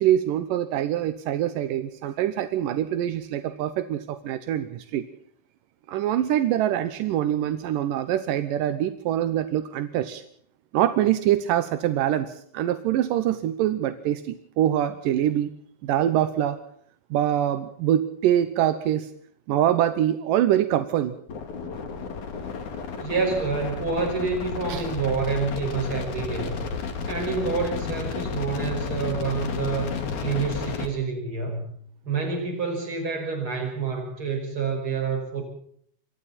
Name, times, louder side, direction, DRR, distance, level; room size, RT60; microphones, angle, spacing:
voice 1, 0.0-5.1 5.9-10.2 10.7-15.5 15.8-16.6 17.1-19.1 19.5-21.1 24.7-24.9, right 11 dB, 75° right, 10 dB, 2.1 m, -24 dB
sound 1, 21.3-30.9, left 5 dB, 50° left, 3.3 m, -32 dB
voice 2, 23.0-26.6 27.1-31.6 32.0-35.4, right 4 dB, 30° right, 4 dB, 6.1 m, -28 dB
27.0 x 23.0 x 4.3 m, 0.62 s
omnidirectional pair, 5.0 m